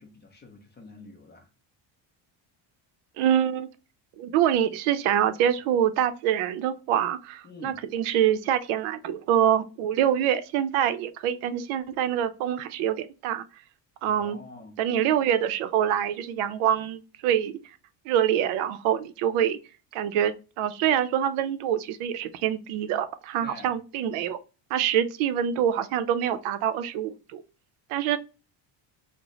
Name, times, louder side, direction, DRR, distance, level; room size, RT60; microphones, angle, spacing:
voice 1, 0.0-1.5 7.4-7.8 14.1-14.8 23.4-23.7, left 3 dB, 25° left, 0.5 m, -47 dB
voice 2, 3.2-3.7 4.2-13.4 14.0-14.4 14.8-17.5 18.1-19.6 19.9-24.4 24.7-27.4 27.9-28.2, right 10 dB, 85° right, 0.6 m, -25 dB
3.8 x 2.1 x 2.9 m
cardioid pair, 175°, 48 cm